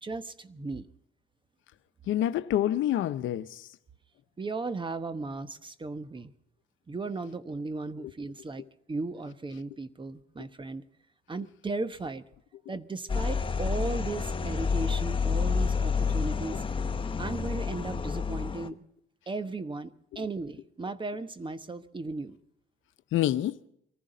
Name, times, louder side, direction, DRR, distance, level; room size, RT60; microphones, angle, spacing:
voice 1, 0.0-0.9 4.4-6.3 6.9-10.8 11.3-12.2 12.7-16.6 17.2-18.8 19.3-22.4, right 3 dB, 25° right, 1.1 m, -36 dB
voice 2, 2.1-3.7 8.0-8.1 20.1-20.2 23.1-23.6, left 12 dB, 80° left, 0.8 m, -27 dB
sound 1, 13.1-18.7, left 5 dB, 25° left, 0.9 m, -29 dB
24.0 x 15.0 x 3.9 m
cardioid pair, 90°, 20 cm